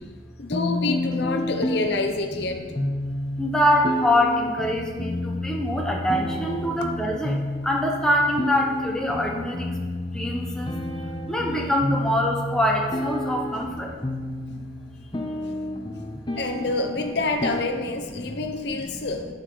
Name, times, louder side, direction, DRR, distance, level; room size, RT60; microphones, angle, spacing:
voice 1, 0.4-2.6 16.3-19.3, left 3 dB, 60° left, 5 dB, 0.7 m, -27 dB
sound 1, 0.5-18.5, left 1 dB, 25° left, 0.6 m, -30 dB
voice 2, 3.4-9.7 10.1-10.8 11.3-13.9 18.2-18.8, left 1 dB, 5° left, -1 dB, 0.9 m, -24 dB
12.0 x 6.6 x 3.9 m, 1.5 s
head